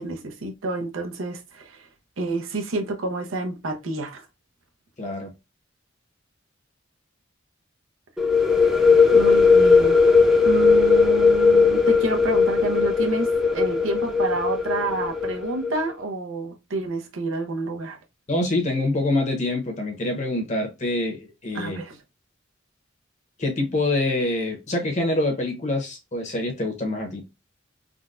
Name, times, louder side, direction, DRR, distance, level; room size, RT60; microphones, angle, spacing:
voice 1, 0.0-1.8 2.2-4.3 9.1-10.0 10.4-18.0 21.5-22.0, right 3 dB, 85° right, 0.7 m, -29 dB
voice 2, 5.0-5.3 18.3-21.8 23.4-27.2, left 2 dB, 35° left, 0.9 m, -25 dB
sound 1, 8.2-15.8, left 4 dB, ahead, 0.6 m, -18 dB
3.8 x 2.2 x 2.5 m
head